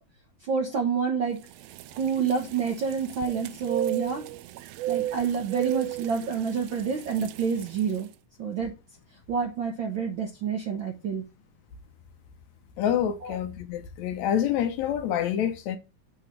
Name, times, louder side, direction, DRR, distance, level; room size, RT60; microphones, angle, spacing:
voice 1, 0.4-1.4 1.9-4.2 4.9-8.1 8.4-8.7 9.3-11.2 13.2-13.4, right 6 dB, 65° right, 1.2 m, -28 dB
sound 1, 1.4-8.0, right 13 dB, 85° right, 1.5 m, -35 dB
voice 2, 12.8-15.8, left 9 dB, 75° left, 1.9 m, -27 dB
7.8 x 3.2 x 5.7 m
omnidirectional pair, 3.5 m